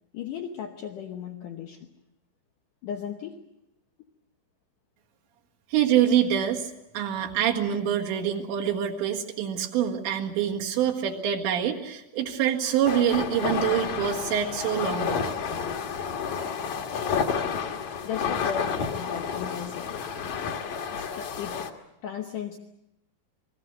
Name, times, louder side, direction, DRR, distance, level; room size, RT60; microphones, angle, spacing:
voice 1, 0.1-1.9 2.8-3.4 18.0-20.2 20.8-21.7 22.0-22.6, left 8 dB, 85° left, 3 dB, 1.8 m, -36 dB
voice 2, 5.7-15.3, right 9 dB, 75° right, 0 dB, 4.0 m, -25 dB
sound 1, 12.9-21.7, left 6 dB, 60° left, 2.2 m, -30 dB
29.0 x 20.5 x 6.6 m, 0.89 s
omnidirectional pair, 5.4 m